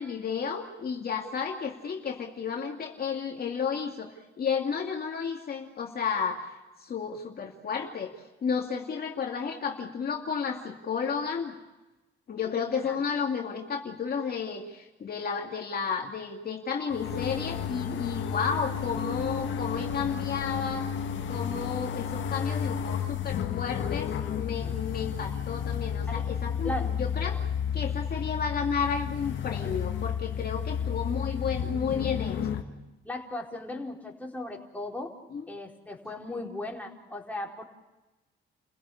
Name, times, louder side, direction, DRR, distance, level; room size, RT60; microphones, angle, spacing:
voice 1, 0.0-6.5 6.8-8.1 8.4-11.6 12.3-20.9 21.3-27.4 27.7-32.6 35.3-35.4, left 6 dB, 50° left, 1 dB, 2.6 m, -32 dB
sound 1, 16.9-32.6, left 8 dB, 70° left, 2.0 m, -32 dB
voice 2, 33.0-35.1 35.5-37.6, left 1 dB, 10° left, -1 dB, 4.4 m, -37 dB
30.0 x 16.5 x 8.6 m, 1.1 s
cardioid pair, 90°, 20 cm